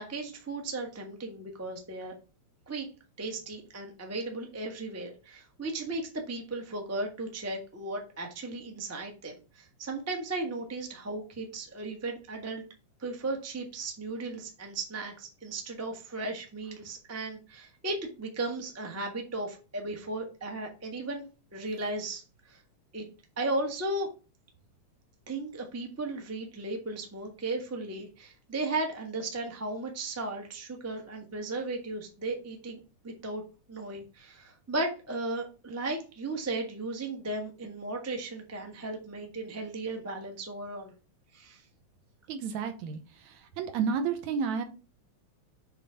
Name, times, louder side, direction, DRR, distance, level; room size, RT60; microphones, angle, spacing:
voice 1, 0.0-2.1 2.7-2.9 3.2-12.6 13.0-21.2 21.5-22.2 22.5-22.6 22.9-23.1 23.4-24.1 25.3-32.8 33.0-33.4 33.7-40.9 41.3-41.6, right 2 dB, 15° right, 2 dB, 0.6 m, -36 dB
voice 2, 42.3-44.6, right 6 dB, 75° right, 7 dB, 2.3 m, -31 dB
6.8 x 3.8 x 5.6 m, 0.32 s
omnidirectional pair, 3.4 m